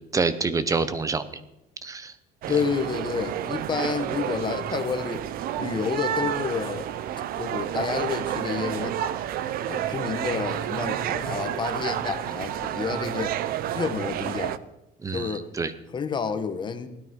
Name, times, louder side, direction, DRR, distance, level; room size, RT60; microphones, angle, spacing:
voice 1, 0.1-1.2 1.8-2.1 15.0-15.7, right 4 dB, 20° right, 14 dB, 1.0 m, -26 dB
sound 1, 2.4-14.6, right 11 dB, 60° right, 0.7 m, -30 dB
voice 2, 2.5-5.2 5.6-6.9 7.4-9.0 9.6-13.4 13.7-14.6 15.1-15.5 15.9-16.9, left 6 dB, 25° left, 8 dB, 1.3 m, -29 dB
17.0 x 12.5 x 5.5 m, 0.91 s
cardioid pair, 150°, 17 cm